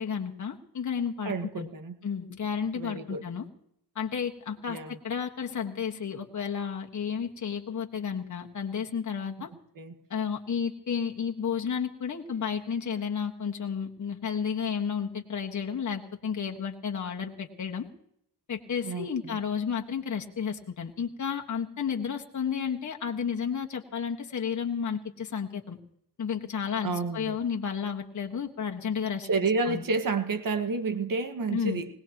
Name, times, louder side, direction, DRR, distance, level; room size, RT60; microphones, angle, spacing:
voice 1, 0.0-1.7 2.0-3.5 3.9-9.5 10.1-17.9 18.5-25.8 26.2-29.3 29.7-29.8 31.5-31.8, left 7 dB, 50° left, 1 dB, 1.6 m, -32 dB
voice 2, 1.3-2.0 2.8-3.2 4.7-5.0 9.8-10.0 18.8-19.4 26.8-27.4 29.2-31.9, right 4 dB, 55° right, 8 dB, 1.9 m, -30 dB
20.5 x 18.5 x 3.0 m, 0.70 s
cardioid pair, 55°, 39 cm